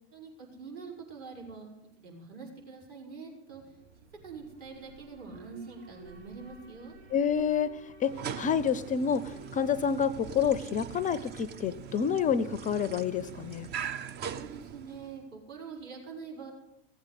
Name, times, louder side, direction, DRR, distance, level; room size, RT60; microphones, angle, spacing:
voice 1, 0.1-3.6 4.2-7.0 14.3-16.5, right 5 dB, 45° right, -1 dB, 5.3 m, -45 dB
Alarm, 3.5-15.5, right 4 dB, 90° right, 2.3 m, -55 dB
voice 2, 7.1-13.7, left 7 dB, 25° left, 16 dB, 0.5 m, -28 dB
sound 1, 8.0-15.2, right 8 dB, 30° right, 0.6 m, -41 dB
17.5 x 8.1 x 8.1 m, 0.94 s
hypercardioid pair, 90°, 32 cm